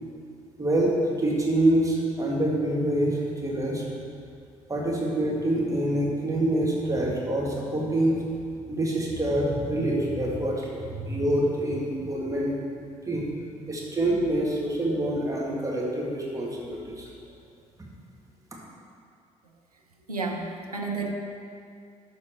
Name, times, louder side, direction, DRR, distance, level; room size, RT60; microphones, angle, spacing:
voice 1, 0.6-3.8 4.7-8.2 8.7-12.5 13.1-13.3 13.7-17.1, right 1 dB, 15° right, -4 dB, 2.1 m, -26 dB
voice 2, 20.1-21.1, right 3 dB, 90° right, 1 dB, 0.5 m, -31 dB
12.0 x 4.2 x 4.7 m, 2.4 s
figure-of-eight pair, 45°, 19 cm